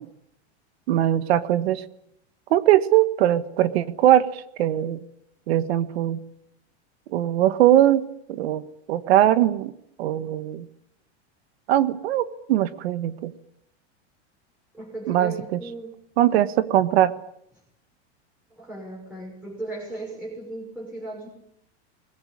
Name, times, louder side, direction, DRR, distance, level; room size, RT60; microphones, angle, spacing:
voice 1, 0.9-1.8 2.5-5.0 5.5-6.2 7.1-8.6 8.9-9.7 10.0-10.7 11.7-13.3 15.1-15.3 16.2-17.1, right 12 dB, 65° right, 13 dB, 1.6 m, -20 dB
voice 2, 14.7-16.0 18.5-21.3, right 2 dB, 5° right, -2 dB, 6.2 m, -36 dB
23.0 x 21.0 x 9.8 m, 0.74 s
supercardioid pair, 170°, 34 cm